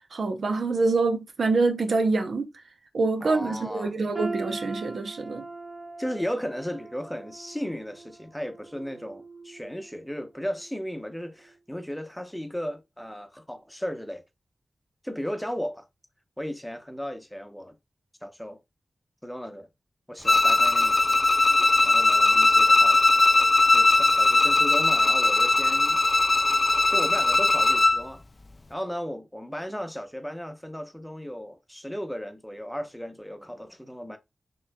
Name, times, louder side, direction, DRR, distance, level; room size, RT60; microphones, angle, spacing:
voice 1, 0.1-2.5 2.9-5.5, right 3 dB, 80° right, 0.7 m, -25 dB
voice 2, 3.2-3.9 6.0-14.2 15.0-15.9 16.4-17.7 18.2-18.6 19.2-19.7 20.1-21.2 21.8-23.0 23.7-26.0 26.9-28.2 28.7-34.2, equal, 5° left, 0.7 m, -35 dB
sound 1, 4.1-10.1 10.5-10.7 11.5-11.6, right 3 dB, 45° right, 0.7 m, -40 dB
Bowed string instrument, 20.2-28.0, left 2 dB, 40° left, 0.3 m, -20 dB
6.0 x 3.0 x 2.2 m
wide cardioid pair, 65°, 0 cm